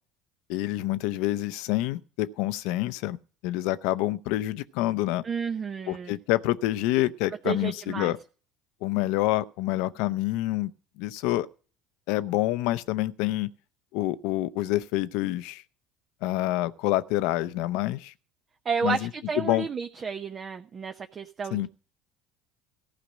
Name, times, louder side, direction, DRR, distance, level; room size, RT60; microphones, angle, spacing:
voice 1, 0.5-3.2 3.4-5.2 5.9-8.2 8.8-10.7 11.0-11.5 12.1-13.5 13.9-15.6 16.2-18.1 18.8-19.1 19.4-19.7 21.5-21.7, left 16 dB, 70° left, 0.7 m, -27 dB
voice 2, 5.2-6.1 7.4-8.1 18.6-21.7, right 5 dB, 35° right, 0.8 m, -31 dB
15.0 x 5.0 x 8.6 m
hypercardioid pair, 70°, 0 cm